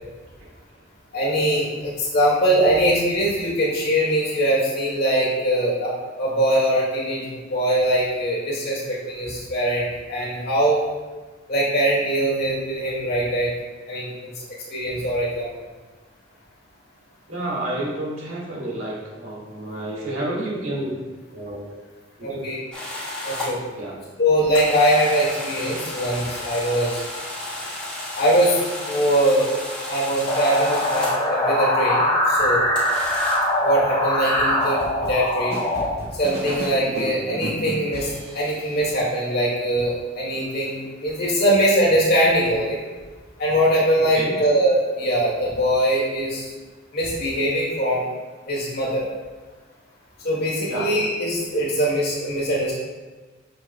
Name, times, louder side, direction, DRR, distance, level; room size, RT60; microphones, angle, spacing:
voice 1, 1.1-10.8 11.5-13.5 13.9-14.3 14.7-15.5 22.2-22.6 23.2-23.6 24.2-27.0 28.2-28.6 28.9-29.5 29.9-32.6 33.6-35.6 36.1-42.8 43.4-46.5 46.9-48.1 48.5-49.1 50.2-52.8, right 1 dB, 50° left, -5 dB, 1.9 m, -22 dB
voice 2, 17.3-21.0 21.3-21.7 22.3-22.4 23.8-24.0 44.0-44.3 50.6-50.9, right 1 dB, 75° right, -4 dB, 1.9 m, -30 dB
sound 1, 22.7-23.5 24.5-31.3 32.8-33.3, left 1 dB, 5° left, 1.9 m, -33 dB
sound 2, 30.3-35.9, left 1 dB, 30° left, 1.1 m, -22 dB
sound 3, 34.6-38.9, equal, 50° right, 1.9 m, -34 dB
7.7 x 6.1 x 2.2 m, 1.3 s
head